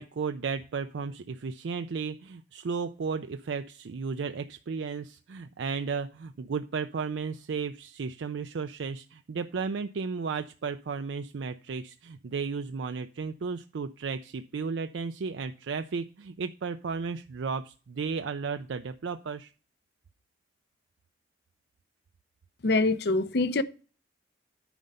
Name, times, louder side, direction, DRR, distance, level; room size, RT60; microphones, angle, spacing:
voice 1, 0.0-19.5, right 5 dB, 75° right, 0.4 m, -34 dB
voice 2, 22.6-23.6, left 2 dB, 60° left, 0.6 m, -24 dB
9.2 x 5.2 x 5.4 m
head